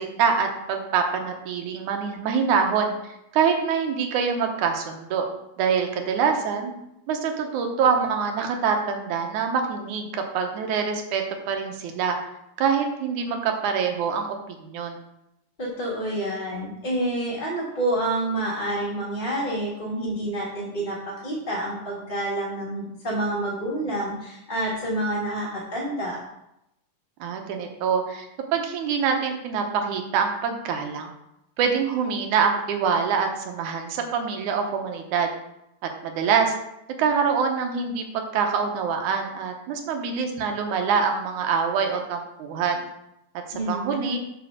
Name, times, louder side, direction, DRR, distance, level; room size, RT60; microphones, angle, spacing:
voice 1, 0.0-2.9 3.3-5.3 5.6-6.7 7.1-12.2 12.6-15.0 27.2-31.1 31.6-35.3 36.0-36.6 37.0-42.8 43.7-44.2, right 6 dB, 85° right, 4 dB, 2.4 m, -25 dB
voice 2, 15.6-26.2 43.5-44.2, right 1 dB, 20° left, -5 dB, 1.2 m, -28 dB
7.4 x 4.4 x 6.3 m, 0.84 s
omnidirectional pair, 3.4 m